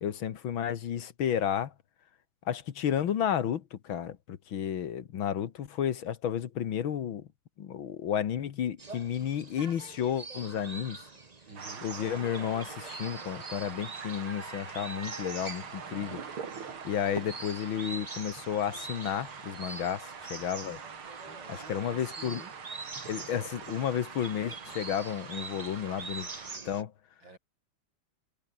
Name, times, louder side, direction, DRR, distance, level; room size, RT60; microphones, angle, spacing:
voice 1, 0.0-1.7 2.5-7.3 7.6-11.0 11.8-16.2 16.8-20.8 21.7-22.4 23.1-26.3 26.7-26.9, left 9 dB, 75° left, 2.1 m, -32 dB
sound 1, 8.8-26.8, right 4 dB, 25° right, 1.2 m, -45 dB
voice 2, 11.5-11.9 21.3-22.5 27.2-27.4, right 3 dB, 65° right, 5.8 m, -50 dB
sound 2, 11.6-26.6, right 6 dB, 90° right, 3.4 m, -44 dB
omnidirectional pair, 2.2 m